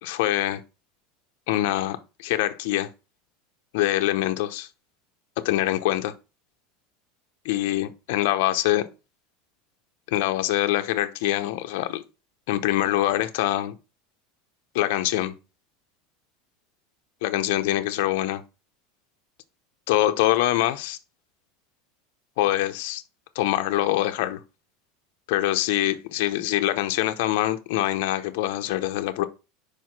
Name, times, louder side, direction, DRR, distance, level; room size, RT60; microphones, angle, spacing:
voice 1, 0.0-0.6 1.5-2.9 3.7-4.7 5.4-6.1 7.5-8.9 10.1-12.0 12.5-13.7 14.7-15.3 17.2-18.4 19.9-21.0 22.4-23.0 23.4-24.4 25.3-29.3, left 14 dB, 65° left, 0.7 m, -24 dB
5.0 x 4.7 x 5.9 m
supercardioid pair, 165°, 0 cm